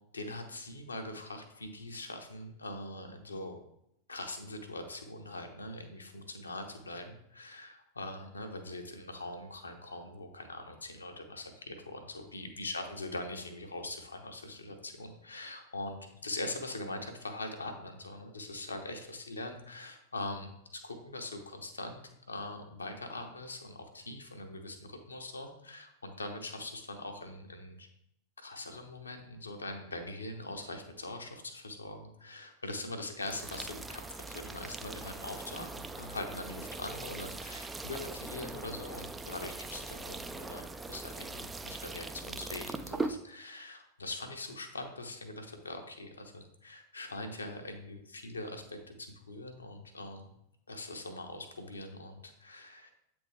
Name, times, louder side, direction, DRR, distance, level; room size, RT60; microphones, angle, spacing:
voice 1, 0.1-3.6 4.1-27.9 28.4-50.3 50.7-52.9, left 2 dB, 75° left, 4 dB, 0.8 m, -42 dB
sound 1, 33.2-43.2, right 3 dB, 10° right, 0.3 m, -41 dB
8.1 x 3.5 x 3.3 m, 0.78 s
figure-of-eight pair, 90°, 0 cm